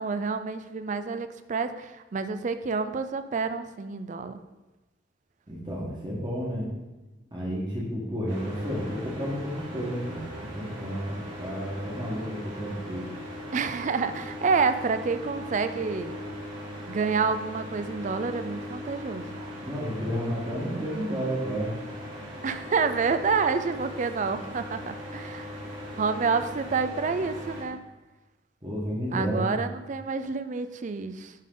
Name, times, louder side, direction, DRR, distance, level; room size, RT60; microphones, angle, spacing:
voice 1, 0.0-4.4 13.5-16.2 16.9-19.4 22.4-25.6 26.0-27.8 29.1-31.3, right 5 dB, 40° right, 10 dB, 0.4 m, -28 dB
voice 2, 5.5-6.7 7.3-13.1 19.6-21.7 28.6-29.6, equal, 25° right, -6 dB, 1.4 m, -31 dB
sound 1, 8.3-27.6, equal, 70° right, 2.5 m, -39 dB
10.5 x 3.7 x 3.8 m, 1.1 s
head